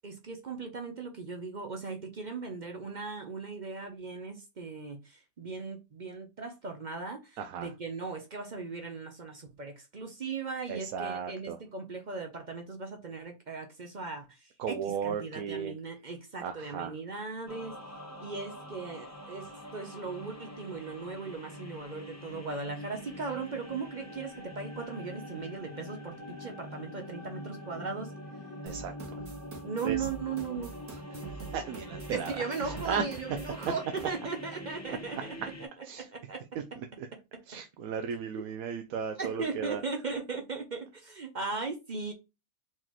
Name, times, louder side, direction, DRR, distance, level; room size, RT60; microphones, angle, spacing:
voice 1, 0.0-17.8 18.2-28.1 29.6-30.7 32.1-35.2 36.1-36.4 38.4-38.5 39.2-42.1, right 4 dB, 45° right, 0.7 m, -38 dB
voice 2, 7.4-7.7 10.7-11.6 14.6-15.8 16.4-17.0 28.6-29.2 29.8-30.1 30.9-33.0 34.9-35.0 35.8-36.1 36.5-37.1 37.5-39.8, right 7 dB, 85° right, 1.1 m, -36 dB
sound 1, 17.5-35.7, left 1 dB, 15° left, 0.8 m, -44 dB
sound 2, 28.7-34.1, right 5 dB, 65° right, 1.8 m, -45 dB
4.5 x 3.8 x 3.0 m
omnidirectional pair, 1.4 m